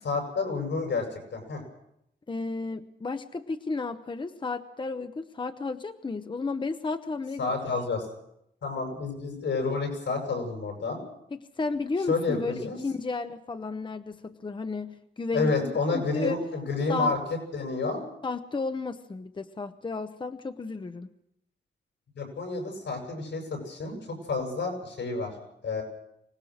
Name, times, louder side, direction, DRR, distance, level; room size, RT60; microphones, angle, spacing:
voice 1, 0.0-1.1 1.3-1.6 7.4-8.0 8.6-11.0 12.1-12.8 15.3-17.2 17.5-18.0 22.2-25.3 25.6-25.8, left 3 dB, 90° left, 3 dB, 7.6 m, -29 dB
voice 2, 2.3-7.8 11.3-16.4 16.9-17.1 18.2-21.1, left 3 dB, 25° left, 9 dB, 0.8 m, -33 dB
25.0 x 19.0 x 6.5 m, 0.77 s
wide cardioid pair, 140°, 19 cm